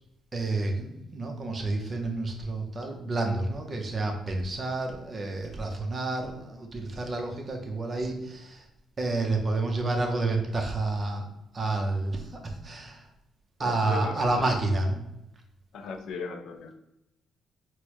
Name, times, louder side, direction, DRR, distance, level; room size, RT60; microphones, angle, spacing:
voice 1, 0.3-8.6 9.0-11.3 11.5-13.0 13.6-15.0, right 2 dB, 35° right, 3 dB, 0.7 m, -29 dB
voice 2, 13.6-14.4 15.7-16.7, left 4 dB, 75° left, 6 dB, 0.4 m, -37 dB
4.2 x 2.1 x 2.9 m, 0.87 s
cardioid pair, 90°, 0 cm